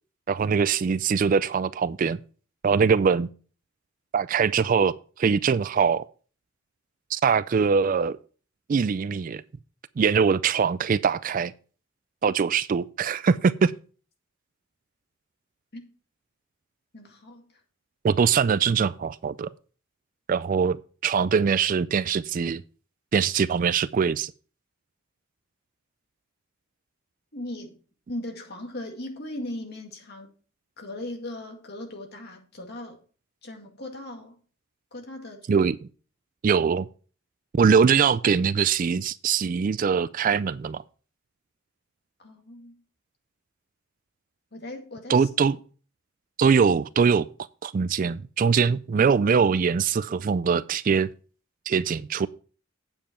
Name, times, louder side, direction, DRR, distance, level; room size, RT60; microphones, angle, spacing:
voice 1, 0.3-2.2 2.6-3.3 4.1-6.0 7.1-8.2 8.7-9.4 10.0-11.5 12.2-13.7 18.0-19.5 20.3-20.8 21.0-22.6 23.1-24.3 35.5-35.9 36.4-36.9 37.5-40.8 45.1-45.6 46.4-47.3 47.6-51.1 51.7-52.3, right 6 dB, 40° right, 0.3 m, -22 dB
voice 2, 16.9-17.4 27.3-27.7 28.1-30.3 30.8-33.0 33.4-34.4 34.9-35.6 42.2-42.8 44.5-45.3, left 1 dB, 50° left, 2.1 m, -38 dB
8.9 x 7.3 x 4.3 m
head